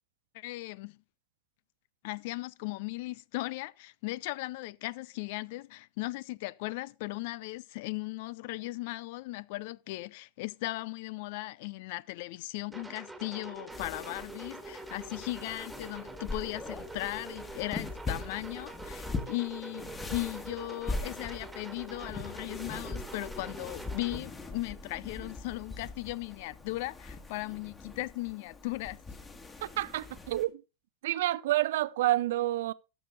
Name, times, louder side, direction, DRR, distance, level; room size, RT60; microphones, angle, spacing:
voice 1, 0.3-1.0 2.0-29.0, left 20 dB, 55° left, 0.4 m, -37 dB
sound 1, 12.7-24.2, right 2 dB, 10° right, 1.6 m, -45 dB
sound 2, 13.7-30.4, left 3 dB, 20° left, 1.7 m, -42 dB
voice 2, 29.6-30.6 31.0-32.7, right 15 dB, 60° right, 0.4 m, -29 dB
12.5 x 6.8 x 3.9 m
figure-of-eight pair, 85°, 0 cm